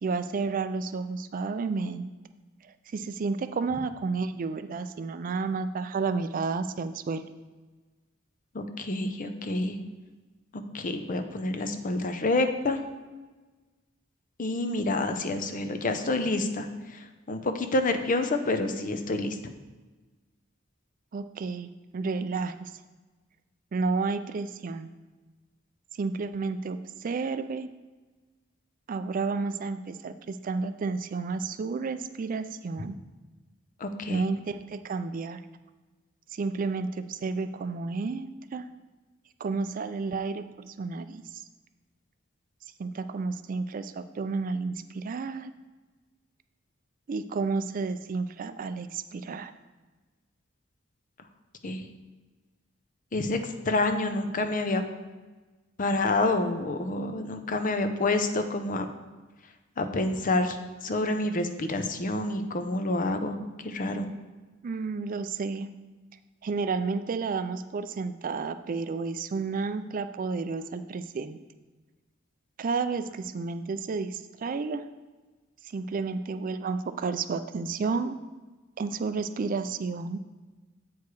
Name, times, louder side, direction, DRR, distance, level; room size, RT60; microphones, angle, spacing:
voice 1, 0.0-2.1 2.6-7.2 21.1-22.7 23.7-24.9 26.0-27.7 28.9-33.0 34.1-35.4 36.3-38.6 39.4-41.4 42.8-45.5 47.1-49.5 64.6-65.7 66.4-71.4 72.6-74.8 75.6-78.2 78.8-80.2, right 4 dB, 45° right, 11 dB, 0.4 m, -31 dB
voice 2, 8.5-9.8 10.5-12.8 14.4-19.4 33.8-34.2 51.6-51.8 53.1-54.8 55.8-58.9 59.8-60.6 60.8-63.4 63.6-64.1, left 2 dB, 40° left, 7 dB, 0.6 m, -28 dB
8.2 x 4.8 x 4.7 m, 1.3 s
head